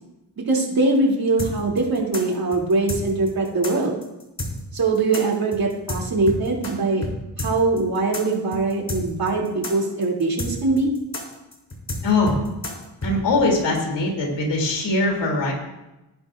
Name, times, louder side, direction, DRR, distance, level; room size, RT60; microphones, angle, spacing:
voice 1, 0.5-3.9 4.7-7.1 7.4-10.9, right 3 dB, 55° right, -2 dB, 3.1 m, -22 dB
sound 1, 1.4-6.7 7.0-7.1 7.4-13.1, left 1 dB, 40° left, 3.4 m, -30 dB
voice 2, 12.0-12.4 13.0-15.5, left 2 dB, 90° left, -1 dB, 3.2 m, -21 dB
19.0 x 10.0 x 2.6 m, 0.97 s
cardioid pair, 70°, 42 cm